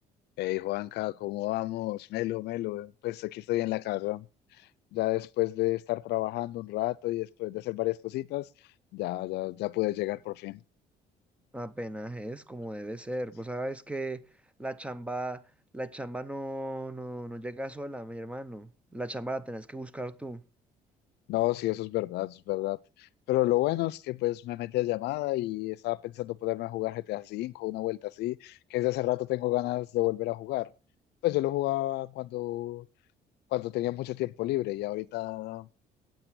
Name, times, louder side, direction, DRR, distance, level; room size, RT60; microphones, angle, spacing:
voice 1, 0.4-4.3 4.9-8.5 8.9-10.6 21.3-30.7 31.2-32.9 33.5-35.7, left 18 dB, 80° left, 0.6 m, -31 dB
voice 2, 11.5-14.3 14.6-15.4 15.7-20.4, right 1 dB, 5° right, 0.7 m, -36 dB
8.9 x 8.7 x 6.2 m
cardioid pair, 110°, 17 cm